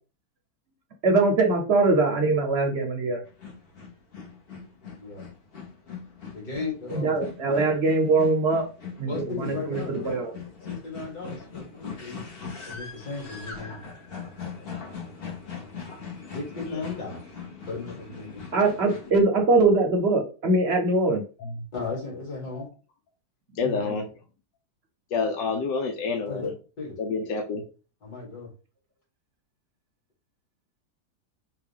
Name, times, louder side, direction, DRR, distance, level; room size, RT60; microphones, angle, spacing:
voice 1, 1.0-3.2 6.9-8.7 9.0-10.3 18.5-21.2 23.6-24.0, right 3 dB, 50° right, 3 dB, 0.8 m, -22 dB
sound 1, 3.3-19.1, left 6 dB, 45° left, 0.9 m, -40 dB
voice 2, 6.3-7.1 7.5-7.6 9.1-10.1 10.7-12.2 12.6-13.7 16.3-17.2 17.7-18.4 21.7-22.7 26.3-26.5 26.8-26.9 28.0-28.5, left 4 dB, 60° left, -4 dB, 3.2 m, -35 dB
voice 3, 23.5-24.2 25.1-26.5 27.0-27.6, left 4 dB, 85° left, 2 dB, 1.3 m, -29 dB
5.7 x 2.3 x 3.5 m, 0.34 s
omnidirectional pair, 1.9 m